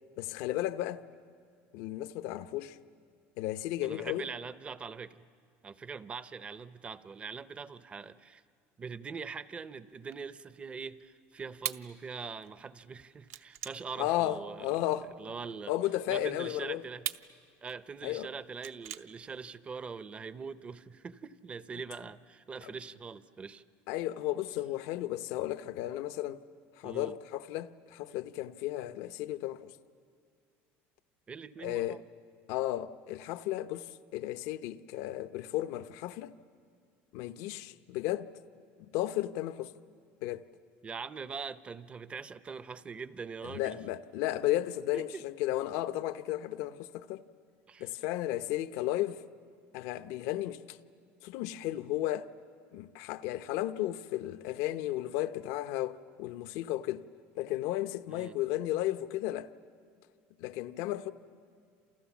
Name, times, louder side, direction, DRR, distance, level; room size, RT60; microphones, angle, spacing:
voice 1, 0.2-1.0 1.7-2.8 3.4-4.3 14.0-15.1 15.7-16.8 18.0-18.3 23.9-26.4 26.8-29.7 31.6-32.0 32.5-36.3 37.1-38.3 38.9-39.7 40.2-40.4 43.4-47.2 47.8-49.2 49.7-50.8 51.2-52.3 52.7-57.0 57.4-59.5 60.4-61.1, left 14 dB, 70° left, 0.8 m, -34 dB
voice 2, 3.8-5.2 5.6-8.4 8.8-14.9 15.2-15.7 16.1-17.1 17.6-23.6 26.8-27.2 31.3-32.0 40.8-43.8 44.9-45.2 47.7-47.9 58.1-58.4, right 5 dB, 20° right, 0.7 m, -43 dB
sound 1, 10.0-15.5 16.0-19.5, right 11 dB, 55° right, 0.8 m, -43 dB
29.0 x 28.0 x 7.2 m
cardioid pair, 140°, 5 cm